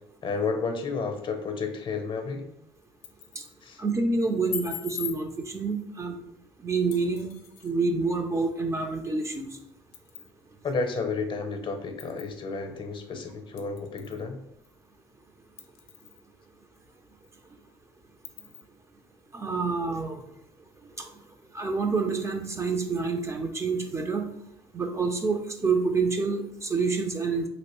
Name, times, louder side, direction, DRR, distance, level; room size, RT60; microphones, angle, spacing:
voice 1, 0.2-2.5 3.6-3.8 10.6-14.4, left 4 dB, 40° left, 6 dB, 0.6 m, -31 dB
sound 1, 2.8-3.6 4.5-5.2 6.9-7.7 9.2-9.3 9.9-10.3 11.0-11.1 12.0-12.3 13.6-14.2 14.6-14.7 15.6-16.3 16.8-16.9 17.2-17.3 18.2-18.6, left 10 dB, 80° left, 0.4 m, -40 dB
voice 2, 3.8-6.2 6.6-7.3 7.6-9.5 19.3-20.2 21.0-21.1 21.5-24.3 24.7-27.5, right 4 dB, 20° right, 4 dB, 0.5 m, -27 dB
3.0 x 2.8 x 3.0 m, 0.78 s
hypercardioid pair, 65°, 13 cm